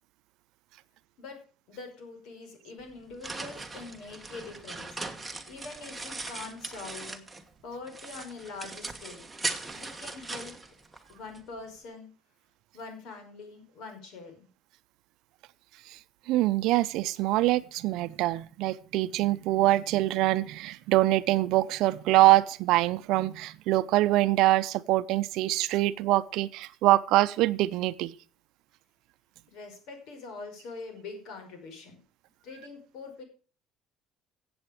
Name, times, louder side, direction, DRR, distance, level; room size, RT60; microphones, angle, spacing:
voice 1, 1.7-7.2 7.6-9.2 9.7-10.5 11.1-12.1 12.7-14.5 29.5-32.0 32.4-33.2, left 4 dB, 60° left, 5 dB, 5.3 m, -44 dB
sound 1, 2.8-7.5 7.9-11.4, right 3 dB, 5° right, 1.3 m, -39 dB
voice 2, 16.3-28.1, right 17 dB, 65° right, 14 dB, 0.7 m, -24 dB
16.0 x 8.1 x 5.0 m, 0.38 s
cardioid pair, 165°, 0 cm